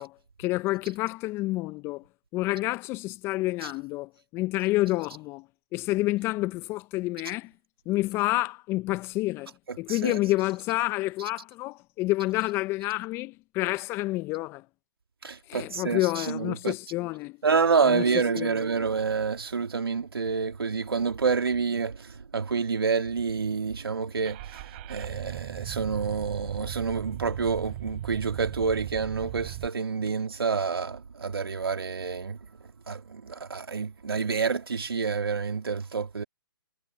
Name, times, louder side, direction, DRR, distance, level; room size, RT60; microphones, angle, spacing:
voice 1, 0.0-2.0 2.3-5.5 5.7-7.5 7.9-14.6 15.5-17.4 17.8-18.6, left 19 dB, 20° left, 0.6 m, -29 dB
voice 2, 15.2-16.0 16.3-16.7 17.4-24.4 24.9-32.4 32.9-36.2, right 5 dB, 75° right, 2.5 m, -28 dB
Car / Engine starting, 24.2-29.7, right 22 dB, 35° right, 5.0 m, -38 dB
figure-of-eight pair, 140°, 12 cm